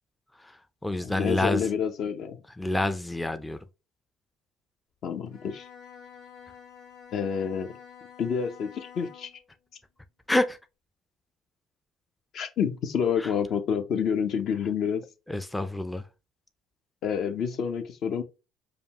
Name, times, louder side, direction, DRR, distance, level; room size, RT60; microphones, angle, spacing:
voice 1, 0.4-1.7 2.6-3.6 10.3-10.6 13.2-13.3 15.3-16.1, left 1 dB, 10° left, 0.4 m, -28 dB
voice 2, 1.0-2.4 5.0-5.7 7.1-7.7 8.2-9.3 12.3-15.0 17.0-18.2, left 7 dB, 60° left, 0.7 m, -28 dB
Bowed string instrument, 5.2-9.4, left 7 dB, 80° left, 1.9 m, -49 dB
5.0 x 2.3 x 2.8 m
supercardioid pair, 80°, 0 cm